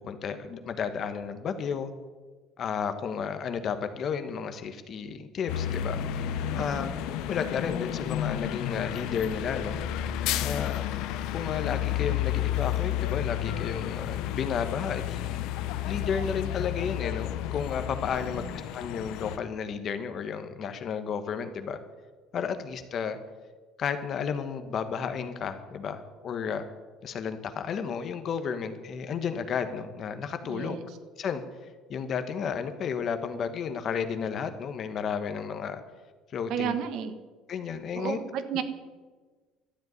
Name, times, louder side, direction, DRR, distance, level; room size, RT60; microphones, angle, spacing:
voice 1, 0.1-1.9 2.6-6.9 7.3-9.8 10.4-10.9 11.3-15.4 15.8-18.5 18.7-21.8 22.3-23.2 23.8-26.6 27.0-30.8 31.2-31.4 31.9-35.8 36.3-36.7 37.5-38.2, left 6 dB, 40° left, 9 dB, 1.2 m, -32 dB
sound 1, 5.5-19.4, left 11 dB, 75° left, 0.9 m, -31 dB
voice 2, 6.6-6.9 18.2-18.5 30.5-30.8 36.5-37.2 38.0-38.6, right 8 dB, 60° right, 10 dB, 1.3 m, -33 dB
12.5 x 8.0 x 9.4 m, 1.3 s
cardioid pair, 155°, 0 cm